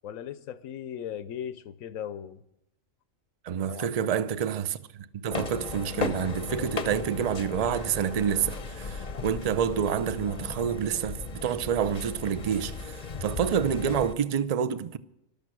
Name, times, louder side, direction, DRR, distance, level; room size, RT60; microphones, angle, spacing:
voice 1, 0.0-2.4 3.7-4.1, left 9 dB, 90° left, 1.1 m, -38 dB
voice 2, 3.4-15.0, right 8 dB, 50° right, 0.5 m, -28 dB
sound 1, 5.3-14.1, left 4 dB, 35° left, 0.7 m, -36 dB
14.0 x 12.0 x 6.1 m
omnidirectional pair, 1.4 m